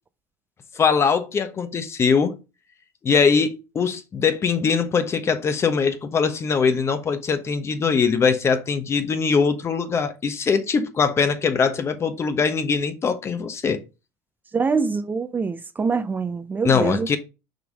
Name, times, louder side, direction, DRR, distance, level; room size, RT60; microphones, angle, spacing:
voice 1, 0.7-2.4 3.0-13.8 16.6-17.2, left 5 dB, 35° left, 1.1 m, -22 dB
voice 2, 14.5-17.2, right 4 dB, 25° right, 0.5 m, -25 dB
5.9 x 3.6 x 4.8 m
hypercardioid pair, 85°, 8 cm